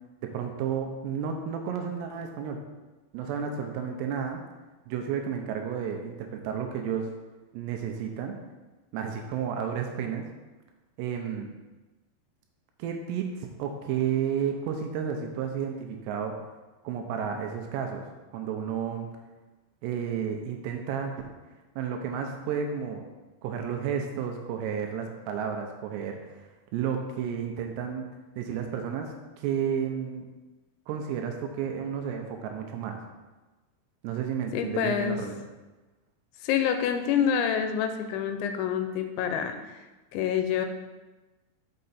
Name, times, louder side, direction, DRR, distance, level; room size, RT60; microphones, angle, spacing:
voice 1, 0.2-2.6 3.1-4.4 4.9-7.1 7.5-8.4 8.9-10.3 11.0-11.5 12.8-16.3 16.8-18.1 18.3-19.1 19.8-21.2 21.8-23.1 23.4-28.1 28.4-30.3 30.9-33.0 34.0-35.3, right 7 dB, 80° right, 3 dB, 2.7 m, -32 dB
voice 2, 34.5-35.3 36.4-39.7 40.1-40.7, left 8 dB, 90° left, 7 dB, 2.9 m, -27 dB
6.4 x 5.7 x 4.1 m, 1.2 s
omnidirectional pair, 5.2 m